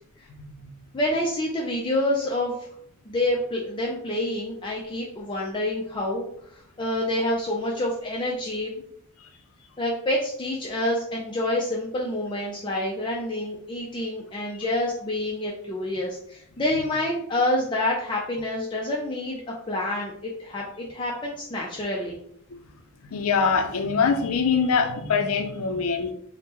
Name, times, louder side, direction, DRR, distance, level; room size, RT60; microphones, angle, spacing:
voice 1, 0.9-2.5 3.1-6.2 6.5-8.7 9.8-22.2, left 1 dB, 25° left, -2 dB, 0.4 m, -27 dB
voice 2, 23.0-26.1, left 5 dB, 85° left, 7 dB, 0.5 m, -23 dB
3.5 x 2.1 x 2.9 m, 0.67 s
head